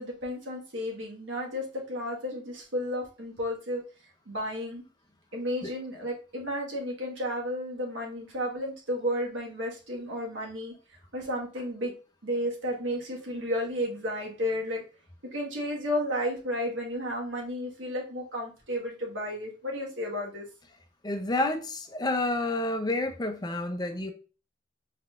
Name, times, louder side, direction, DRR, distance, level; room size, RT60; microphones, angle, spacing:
voice 1, 0.0-3.8 4.2-4.8 5.3-10.7 11.1-11.9 12.2-14.8 15.3-20.4, equal, 70° right, -1 dB, 1.6 m, -32 dB
voice 2, 21.0-24.1, left 2 dB, 20° left, 6 dB, 0.6 m, -29 dB
4.5 x 3.9 x 2.5 m, 0.35 s
head